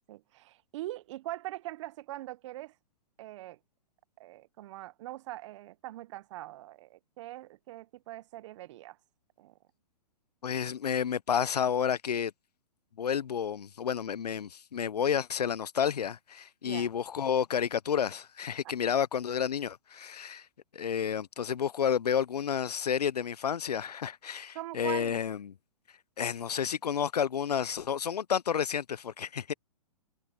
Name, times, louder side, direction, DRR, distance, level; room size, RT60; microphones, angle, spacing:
voice 1, 0.1-2.7 3.2-3.6 4.2-9.0 9.4-9.6 16.6-16.9 24.5-25.2, right 16 dB, 50° right, 0.9 m, -42 dB
voice 2, 10.4-12.3 13.0-20.5 20.7-25.5 26.2-29.5, left 8 dB, 85° left, 0.6 m, -30 dB
hypercardioid pair, 125°, 20 cm